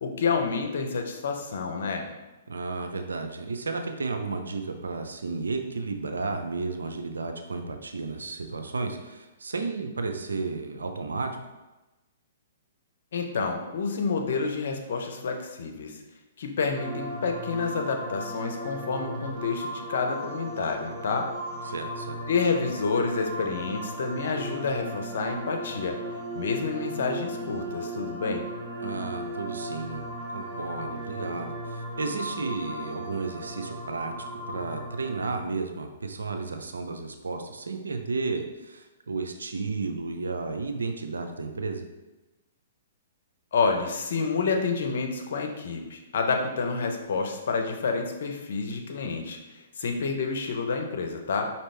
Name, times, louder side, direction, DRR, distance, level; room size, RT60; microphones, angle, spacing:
voice 1, 0.0-2.1 13.1-16.0 16.4-21.3 22.3-26.0 26.3-28.5 43.5-51.5, left 4 dB, 65° left, 4 dB, 0.7 m, -29 dB
voice 2, 2.5-11.3 21.6-22.2 28.8-30.0 30.3-34.1 34.5-41.9, right 4 dB, 85° right, 5 dB, 0.6 m, -33 dB
sound 1, 16.8-35.2, right 1 dB, 35° right, 1.1 m, -37 dB
5.2 x 2.9 x 3.3 m, 1.1 s
hypercardioid pair, 130°, 0 cm